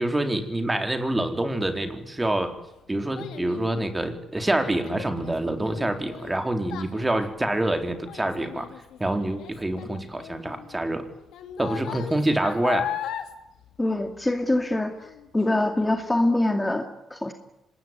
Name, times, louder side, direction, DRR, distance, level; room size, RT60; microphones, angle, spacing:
voice 1, 0.0-2.6 2.9-8.7 9.0-11.1 11.6-12.9, right 1 dB, 15° right, 7 dB, 4.1 m, -26 dB
Child speech kid speaking, 2.0-14.6 15.0-15.4 15.9-16.0, left 10 dB, 80° left, 2.8 m, -38 dB
voice 2, 13.8-14.9 15.3-17.3, left 1 dB, 15° left, 5 dB, 2.5 m, -24 dB
25.0 x 20.5 x 9.4 m, 0.84 s
cardioid pair, 90°, 0 cm